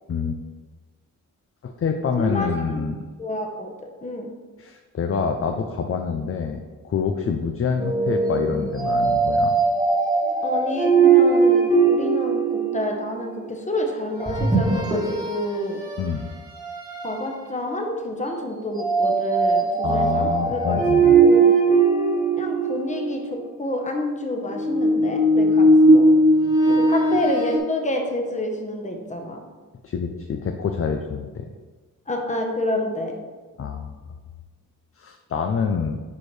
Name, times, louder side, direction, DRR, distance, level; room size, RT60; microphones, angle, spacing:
voice 1, 0.1-0.4 1.6-3.1 4.6-9.5 16.0-16.3 19.8-21.2 29.8-31.5 33.6-33.9 35.0-36.0, left 6 dB, 40° left, 5 dB, 0.5 m, -26 dB
voice 2, 2.2-2.9 3.2-4.3 10.4-15.8 17.0-20.8 21.1-21.6 22.4-26.1 26.7-29.4 32.1-33.1, left 1 dB, 20° left, 2 dB, 1.0 m, -28 dB
sound 1, 7.8-13.1 14.2-15.4 15.9-16.1 16.6-17.2 18.8-23.2 24.5-27.6, right 3 dB, 10° right, 1.3 m, -19 dB
9.7 x 4.4 x 3.2 m, 1.4 s
wide cardioid pair, 140°, 33 cm